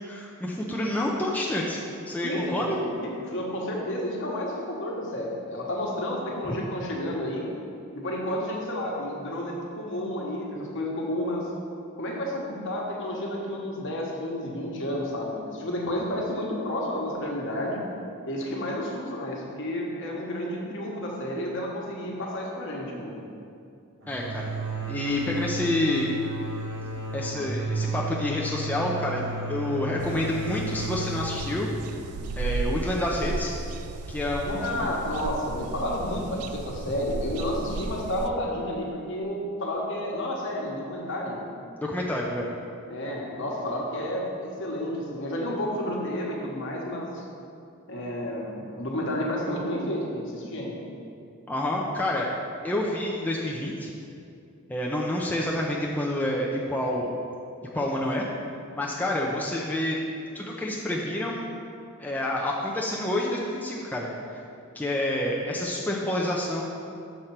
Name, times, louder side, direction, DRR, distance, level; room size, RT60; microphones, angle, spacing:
voice 1, 0.0-2.8 6.5-6.6 24.1-24.4 24.9-26.1 27.1-31.7 32.4-33.5 34.1-34.9 41.8-42.5 51.5-52.3 52.6-53.9 54.7-57.1 57.6-58.3 58.7-60.0 60.3-61.5 62.0-64.4 64.7-66.6, left 1 dB, 10° left, -3 dB, 0.5 m, -28 dB
voice 2, 2.2-7.5 7.9-11.5 12.0-17.8 18.3-23.2 34.4-41.5 42.9-47.2 47.9-50.8, left 1 dB, 60° left, -2 dB, 1.2 m, -31 dB
sound 1, 24.0-33.5, right 1 dB, 55° right, 1.0 m, -34 dB
sound 2, 30.0-38.3, right 3 dB, 85° right, 0.4 m, -35 dB
6.6 x 4.3 x 5.8 m, 2.5 s
head